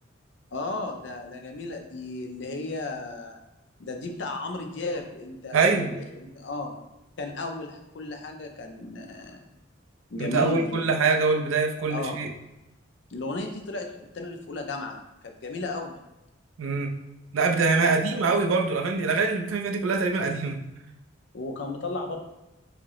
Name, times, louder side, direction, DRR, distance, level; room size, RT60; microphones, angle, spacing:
voice 1, 0.5-3.4 3.8-6.8 7.2-9.5 10.1-10.8 11.9-12.2 13.1-13.9 14.1-16.0 17.8-17.9 21.3-22.2, left 2 dB, 60° left, 4 dB, 0.5 m, -34 dB
voice 2, 5.5-6.0 10.2-12.3 16.6-17.0 17.3-20.7, right 4 dB, 90° right, 4 dB, 0.4 m, -24 dB
4.8 x 2.0 x 2.9 m, 0.95 s
head